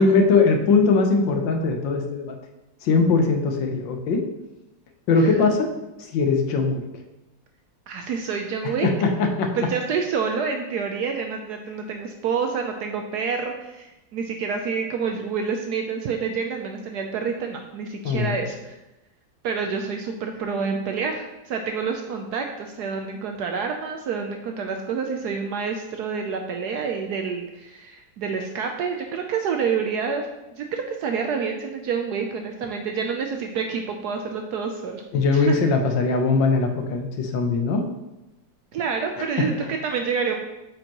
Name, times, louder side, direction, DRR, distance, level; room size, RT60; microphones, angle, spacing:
voice 1, 0.0-2.4 2.8-4.2 5.1-5.7 6.0-6.8 8.6-9.5 18.0-18.4 35.1-37.9 39.2-39.5, left 4 dB, 75° left, 4 dB, 1.5 m, -21 dB
voice 2, 7.9-8.9 9.5-18.7 19.4-30.3 30.5-35.0 35.3-35.6 38.7-40.3, right 5 dB, 70° right, 4 dB, 1.0 m, -28 dB
8.3 x 5.3 x 3.0 m, 0.97 s
omnidirectional pair, 2.1 m